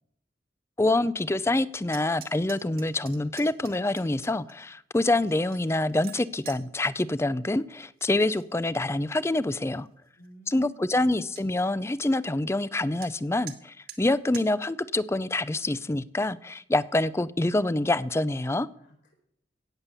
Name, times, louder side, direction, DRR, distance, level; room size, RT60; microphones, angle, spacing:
voice 1, 0.8-9.9 10.5-18.7, left 2 dB, 15° left, 0.4 m, -26 dB
sound 1, 1.9-4.5 5.1-6.6 8.0-8.4 8.8-9.3 9.8-9.9 10.2-10.3 10.6-10.7 10.9-11.4 13.0-13.1 13.5-13.6 13.9-14.0 14.3-14.5, right 10 dB, 60° right, 1.7 m, -46 dB
voice 2, 10.1-11.1 18.8-19.1, right 1 dB, 65° left, 4.6 m, -53 dB
17.0 x 7.3 x 6.9 m
head